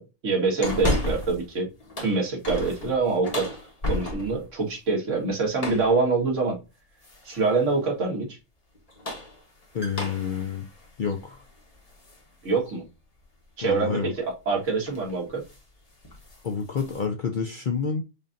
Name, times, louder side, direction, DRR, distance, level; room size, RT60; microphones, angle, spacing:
voice 1, 0.0-1.7 2.0-3.5 3.9-6.6 7.3-8.4 12.4-12.8 13.6-15.4, right 4 dB, 70° right, 2.0 m, -25 dB
sound 1, 0.6-1.5 1.8-4.5 5.6-6.0 7.0-7.5 8.7-12.2 12.7-12.8 14.3-14.5 14.8-15.1 15.4-15.7 16.0-17.0, left 1 dB, 30° left, 1.2 m, -33 dB
voice 2, 9.7-10.7 11.0-11.4 13.6-14.1 16.4-18.0, left 6 dB, 55° left, 0.6 m, -28 dB
5.1 x 2.7 x 2.5 m
omnidirectional pair, 1.3 m